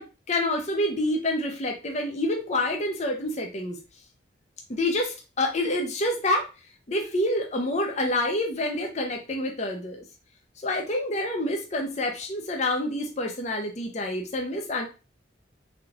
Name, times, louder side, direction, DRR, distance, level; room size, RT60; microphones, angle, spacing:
voice 1, 0.0-3.8 4.7-6.5 6.9-10.0 10.6-14.9, left 1 dB, 40° left, 2 dB, 0.7 m, -27 dB
3.6 x 3.5 x 2.9 m, 0.30 s
head